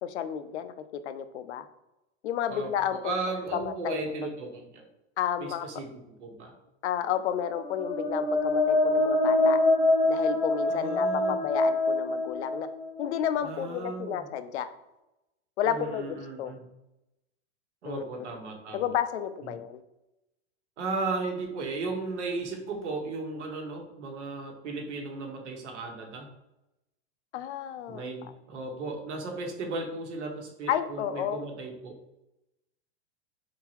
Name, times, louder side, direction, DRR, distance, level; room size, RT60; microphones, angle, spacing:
voice 1, 0.0-1.6 2.2-3.1 3.5-4.1 5.2-5.7 6.8-9.6 10.1-12.7 13.0-14.7 15.6-16.5 17.8-18.3 18.7-19.8 27.3-28.0 30.7-31.4, left 9 dB, 75° left, 11 dB, 0.6 m, -31 dB
voice 2, 3.0-4.9 5.4-5.9 6.2-6.5 10.7-11.4 13.4-14.3 15.6-16.6 17.8-18.9 19.4-19.6 20.8-26.3 27.9-31.9, right 3 dB, 85° right, 2 dB, 1.4 m, -35 dB
sound 1, 7.4-13.2, left 2 dB, 10° left, 0.8 m, -25 dB
4.6 x 3.8 x 2.9 m, 0.92 s
supercardioid pair, 160°, 34 cm